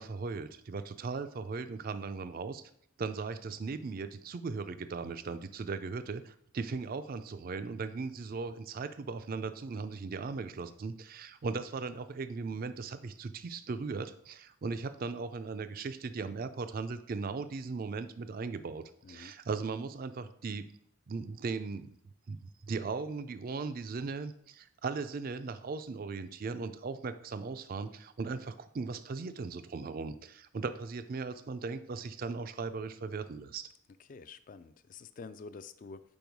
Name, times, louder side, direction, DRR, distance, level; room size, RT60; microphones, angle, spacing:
voice 1, 0.0-2.6 3.0-20.7 21.1-22.0 22.3-22.4 22.6-33.7, right 4 dB, 45° right, 11 dB, 0.4 m, -38 dB
voice 2, 19.0-19.4 34.0-36.0, left 4 dB, 40° left, 13 dB, 0.3 m, -48 dB
5.3 x 4.6 x 4.6 m, 0.69 s
head